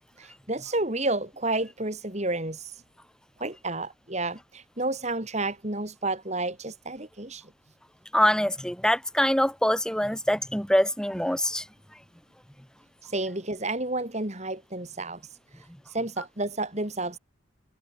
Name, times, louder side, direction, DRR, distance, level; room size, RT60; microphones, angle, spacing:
voice 1, 0.2-2.7 3.4-7.5 13.0-15.2 15.9-17.2, right 2 dB, 35° right, 3.0 m, -31 dB
voice 2, 8.1-11.6, equal, 5° left, 4.4 m, -24 dB
head